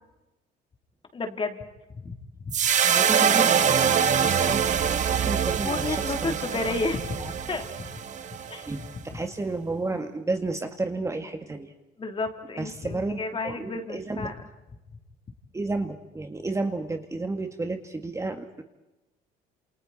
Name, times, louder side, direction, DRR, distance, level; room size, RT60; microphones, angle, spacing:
voice 1, 1.1-1.6 2.0-2.2 2.4-2.6 5.6-7.9 8.5-8.7 9.1-9.2 12.0-14.3, left 3 dB, 30° left, 5 dB, 3.2 m, -32 dB
sound 1, 2.5-8.9, right 8 dB, 45° right, 1.5 m, -24 dB
voice 2, 2.8-6.0 6.2-6.7 7.2-7.3 8.7-8.8 9.1-11.7 12.6-13.2 13.4-14.3 15.5-18.6, right 3 dB, 15° right, 6 dB, 1.9 m, -32 dB
28.5 x 28.0 x 4.3 m, 1.0 s
cardioid pair, 110°, 17 cm